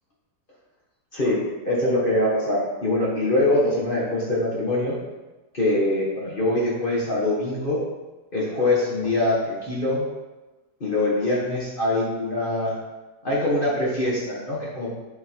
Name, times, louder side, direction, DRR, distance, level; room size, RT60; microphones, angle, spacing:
voice 1, 1.7-5.0 5.5-7.8 8.3-10.1 10.8-12.7 13.2-14.9, left 1 dB, 30° left, -5 dB, 1.6 m, -23 dB
7.7 x 4.8 x 4.6 m, 1.2 s
omnidirectional pair, 1.8 m